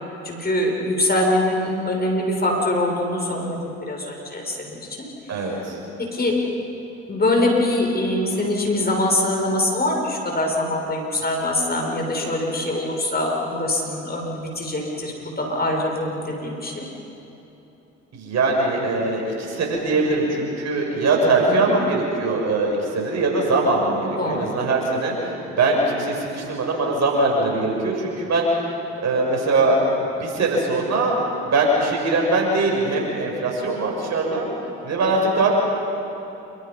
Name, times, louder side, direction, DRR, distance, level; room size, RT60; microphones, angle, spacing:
voice 1, 0.2-5.0 5.3-5.5 6.0-6.3 7.1-16.8 21.5-21.7 24.2-24.5, left 1 dB, 30° left, 0 dB, 6.7 m, -23 dB
voice 2, 5.3-5.8 18.1-25.1 25.5-28.5 29.0-31.2 31.4-34.5 34.8-35.5, right 2 dB, 50° right, -1 dB, 7.3 m, -21 dB
28.0 x 25.5 x 5.7 m, 3.0 s
hypercardioid pair, 55°, 33 cm